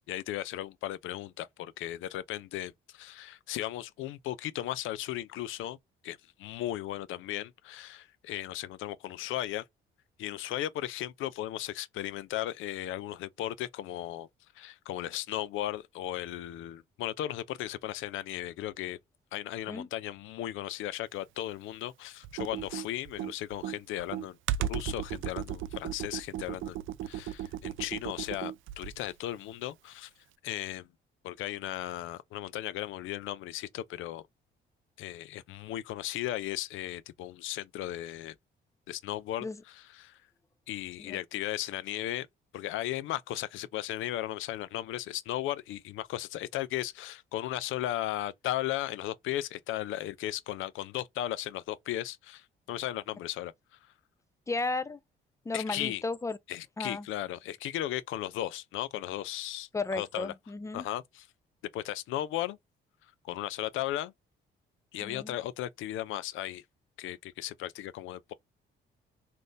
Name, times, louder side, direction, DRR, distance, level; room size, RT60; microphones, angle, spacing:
voice 1, 0.1-5.8 6.0-9.6 10.2-14.3 14.6-19.0 19.3-26.8 27.0-30.1 30.4-30.9 31.2-34.2 35.0-38.3 38.9-40.2 40.7-42.3 42.5-53.5 55.5-56.0 56.5-60.3 60.7-61.3 61.7-62.6 63.2-64.1 64.9-66.6 67.0-68.3, left 13 dB, 80° left, 0.4 m, -36 dB
Computer keyboard, 22.2-29.1, right 11 dB, 80° right, 0.4 m, -36 dB
voice 2, 54.5-55.0 55.5-56.4 56.8-57.1 59.7-60.9 65.0-65.3, left 3 dB, 15° left, 0.4 m, -34 dB
3.5 x 2.6 x 2.5 m
cardioid pair, 90°, 20 cm